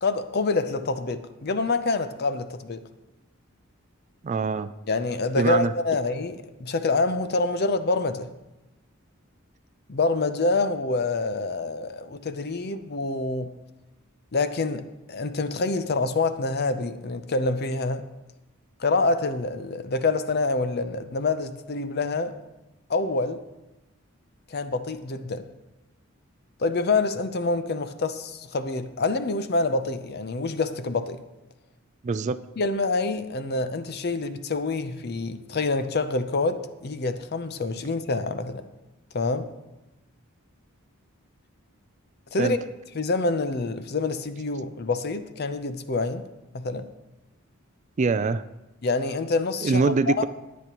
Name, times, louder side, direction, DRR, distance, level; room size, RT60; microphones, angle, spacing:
voice 1, 0.0-2.9 4.9-8.3 9.9-13.5 14.3-18.0 18.8-22.3 22.9-23.4 24.5-25.5 26.6-31.2 32.6-38.7 39.1-39.5 42.3-42.6 42.9-46.2 46.5-46.8 48.8-50.3, left 3 dB, 50° left, 0.6 m, -26 dB
voice 2, 4.2-4.7 5.4-5.7 32.0-32.4 42.4-42.5 48.0-48.4 49.6-50.3, right 4 dB, 35° right, 0.3 m, -23 dB
20.0 x 8.3 x 3.0 m
head